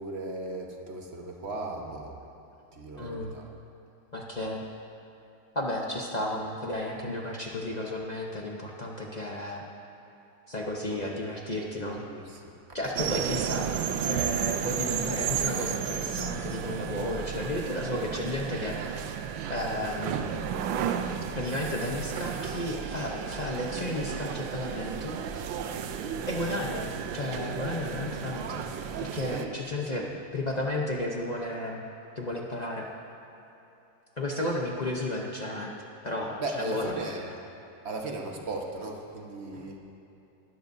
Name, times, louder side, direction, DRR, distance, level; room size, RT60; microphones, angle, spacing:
voice 1, 0.0-2.2 2.7-3.5 10.9-11.0 11.2-11.3 11.8-12.4 29.3-30.1 36.4-37.4 37.8-39.8, right 2 dB, 40° right, 1 dB, 1.3 m, -37 dB
voice 2, 3.0-3.4 4.1-4.6 5.5-9.6 10.5-12.0 12.7-13.7 14.1-19.1 19.5-20.5 21.4-25.5 26.3-28.7 29.0-30.0 30.3-31.9 32.1-32.9 34.2-35.7 36.0-36.9, left 1 dB, 45° left, -1 dB, 0.5 m, -33 dB
sound 1, 13.0-29.5, right 8 dB, 90° right, 1.4 m, -33 dB
21.0 x 12.5 x 2.7 m, 2.9 s
omnidirectional pair, 2.1 m